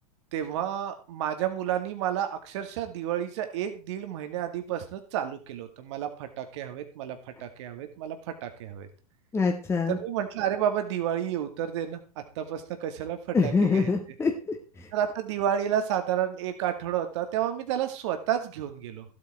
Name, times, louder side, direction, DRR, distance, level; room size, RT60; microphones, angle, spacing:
voice 1, 0.3-8.9 9.9-12.0 12.4-13.9 14.9-19.1, right 10 dB, 50° right, 7 dB, 2.1 m, -31 dB
voice 2, 9.3-10.0 13.3-14.9, left 4 dB, 15° left, 2 dB, 1.9 m, -25 dB
15.5 x 8.6 x 4.4 m, 0.34 s
figure-of-eight pair, 95°, 19 cm